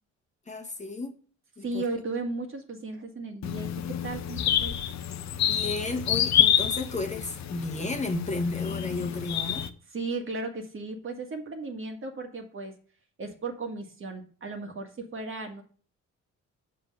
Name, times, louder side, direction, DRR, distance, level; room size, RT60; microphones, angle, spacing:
voice 1, 0.5-1.2 1.6-1.8 5.5-9.7, left 2 dB, 25° left, 1.2 m, -33 dB
voice 2, 1.6-3.7 4.0-4.8 9.9-12.7 13.2-15.6, right 3 dB, 45° right, 1.7 m, -35 dB
sound 1, 3.4-9.7, left 10 dB, 65° left, 0.7 m, -28 dB
5.9 x 5.1 x 6.3 m
cardioid pair, 90°, 30 cm